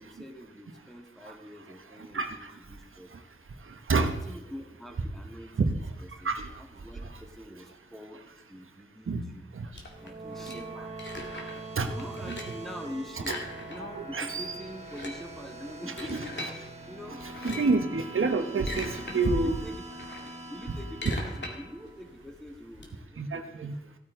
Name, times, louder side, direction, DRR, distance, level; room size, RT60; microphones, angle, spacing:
voice 1, 0.0-3.1 3.9-5.8 6.0-6.3 6.6-9.4 10.0-11.0 11.9-13.4 13.7-16.4 16.9-18.3 19.1-19.9 20.5-23.4 23.8-24.0, equal, ahead, 2 dB, 1.8 m, -44 dB
voice 2, 2.0-2.5 3.1-3.2 3.7-4.1 5.6-5.7 6.2-6.5 9.1-9.2 9.5-9.7 10.5-10.6 11.7-11.9 12.2-12.4 13.8-14.5 16.0-16.1 17.4-19.6 23.2-23.7, right 3 dB, 75° right, 6 dB, 1.1 m, -28 dB
sound 1, 9.7-11.7 12.0-12.7 13.2-14.1 14.3-14.4 14.8-16.6 17.2-17.8 18.3-19.2 19.5-22.9, left 2 dB, 60° left, 2.2 m, -40 dB
sound 2, 9.8-22.2, right 2 dB, 30° right, 1.7 m, -43 dB
16.0 x 9.1 x 3.8 m, 0.89 s
wide cardioid pair, 65°, 21 cm